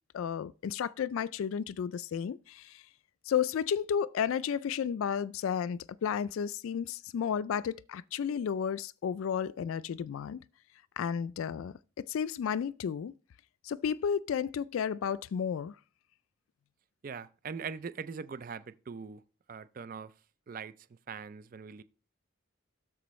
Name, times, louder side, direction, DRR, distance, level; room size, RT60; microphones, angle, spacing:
voice 1, 0.1-2.8 3.3-10.4 11.0-13.1 13.6-15.7, left 7 dB, 75° left, 0.3 m, -32 dB
voice 2, 17.0-19.2 19.5-20.1 20.5-20.7 21.1-21.8, right 5 dB, 40° right, 0.4 m, -41 dB
13.0 x 5.0 x 3.1 m
head